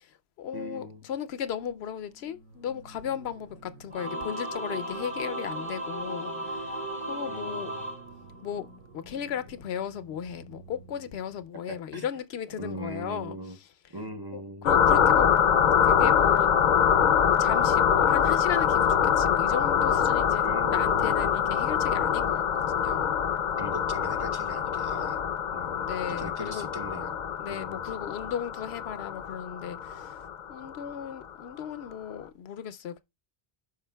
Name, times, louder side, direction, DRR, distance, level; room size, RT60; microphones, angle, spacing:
voice 1, 0.0-6.8 7.0-7.7 8.4-8.7 8.9-13.4 14.3-15.3 15.8-16.5 16.8-16.9 17.2-23.1 25.8-26.7 27.4-30.2 30.5-33.0, left 9 dB, 85° left, 0.8 m, -36 dB
voice 2, 0.5-1.1 7.3-7.9 11.7-12.1 12.6-13.6 13.9-14.7 20.4-21.6 23.6-25.2 25.5-27.2 27.5-27.8, right 1 dB, 25° right, 0.6 m, -40 dB
sound 1, 1.5-11.4, right 3 dB, 70° right, 3.4 m, -51 dB
Singing / Musical instrument, 3.9-8.8, right 1 dB, 50° right, 1.9 m, -35 dB
sound 2, 14.6-30.9, left 8 dB, 55° left, 0.6 m, -24 dB
11.5 x 5.1 x 2.2 m
omnidirectional pair, 1.0 m